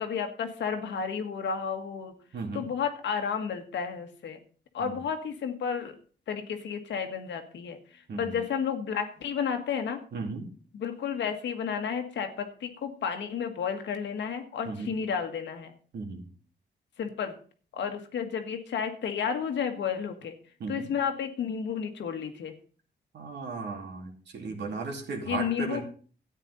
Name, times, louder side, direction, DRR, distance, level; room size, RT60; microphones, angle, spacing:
voice 1, 0.0-2.1 2.5-4.4 4.7-5.9 6.3-10.0 10.7-15.7 17.0-17.3 17.7-20.3 20.7-22.5 25.2-25.8, left 7 dB, 90° left, 6 dB, 1.7 m, -32 dB
voice 2, 2.3-2.7 4.8-5.0 8.1-8.4 10.1-10.5 14.6-14.9 15.9-16.3 20.6-20.9 23.1-25.8, right 4 dB, 70° right, 1 dB, 2.6 m, -36 dB
13.5 x 9.2 x 4.1 m, 0.42 s
wide cardioid pair, 125°, 18 cm